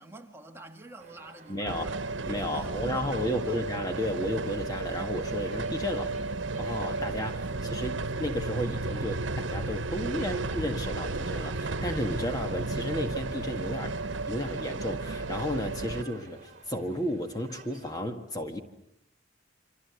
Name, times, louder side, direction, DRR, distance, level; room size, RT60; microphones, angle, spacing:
voice 1, 0.0-2.0 2.3-3.7 7.5-7.7, right 1 dB, 15° right, 2.0 m, -48 dB
sound 1, 1.0-18.0, right 3 dB, 40° right, 3.2 m, -52 dB
voice 2, 1.5-1.9 2.3-6.1 6.6-13.9 14.3-18.6, left 1 dB, 20° left, 1.8 m, -33 dB
sound 2, 1.7-16.0, right 3 dB, 85° right, 1.1 m, -33 dB
28.0 x 26.0 x 8.2 m
head